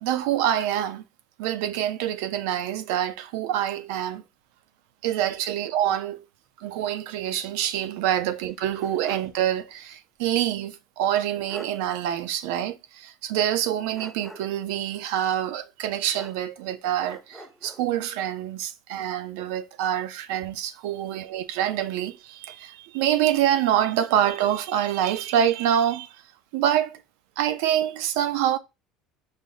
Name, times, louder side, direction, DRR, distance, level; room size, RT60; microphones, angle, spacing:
voice 1, 0.0-1.0 1.4-4.2 5.0-6.3 6.6-26.2 26.5-27.0 27.4-28.6, right 11 dB, 85° right, 0.5 m, -26 dB
sound 1, 8.4-9.4 9.7-9.8 11.1-11.2 11.5-11.8 13.9-14.7 16.1-16.7 17.0-17.9, equal, ahead, 0.8 m, -45 dB
5.2 x 2.0 x 3.8 m
cardioid pair, 135°, 0 cm